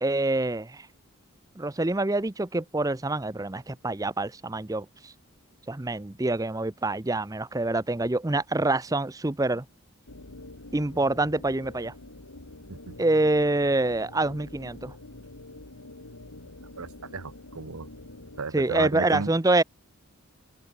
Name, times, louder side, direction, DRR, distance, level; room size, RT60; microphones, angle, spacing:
voice 1, 0.0-0.9 1.6-5.1 5.7-9.6 10.7-11.9 13.0-14.9 18.5-19.6, right 2 dB, 15° right, 0.6 m, -26 dB
sound 1, 10.1-18.4, left 2 dB, 85° left, 2.6 m, -46 dB
voice 2, 16.8-17.9 18.4-19.3, right 4 dB, 80° right, 1.0 m, -34 dB
open air
head